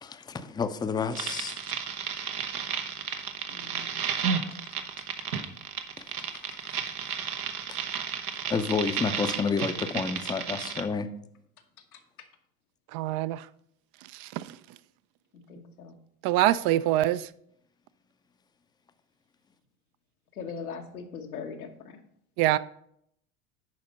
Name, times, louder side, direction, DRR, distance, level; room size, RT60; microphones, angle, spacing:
voice 1, 0.0-1.8 7.7-7.8 8.5-11.1, left 5 dB, 10° left, 0.5 m, -30 dB
sound 1, 1.1-10.8, right 7 dB, 85° right, 1.0 m, -32 dB
voice 2, 3.5-4.0 5.0-5.1 6.2-6.3 11.9-12.0 15.3-16.0 20.3-22.0, left 5 dB, 85° left, 1.3 m, -41 dB
voice 3, 12.9-13.4 14.2-14.4 16.2-17.3 22.4-22.6, right 14 dB, 50° right, 0.5 m, -24 dB
10.5 x 4.3 x 5.2 m
hypercardioid pair, 85°, 43 cm